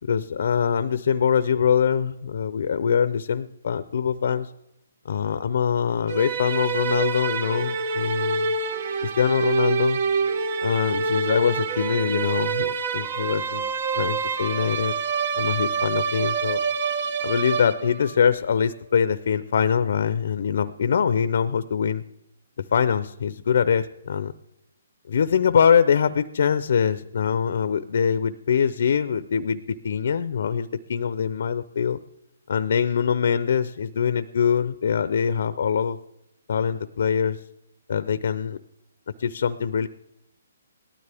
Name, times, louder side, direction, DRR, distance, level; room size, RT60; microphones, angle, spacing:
voice 1, 0.1-4.5 5.0-8.5 9.0-10.0 10.6-14.9 15.4-16.6 17.2-22.0 22.7-24.3 25.1-32.0 32.5-36.0 36.5-37.4 37.9-38.6 39.2-39.9, left 7 dB, 65° left, 14 dB, 0.6 m, -23 dB
sound 1, 6.1-18.2, right 5 dB, 50° right, 1.1 m, -26 dB
18.0 x 12.5 x 3.5 m, 0.82 s
hypercardioid pair, 150°, 0 cm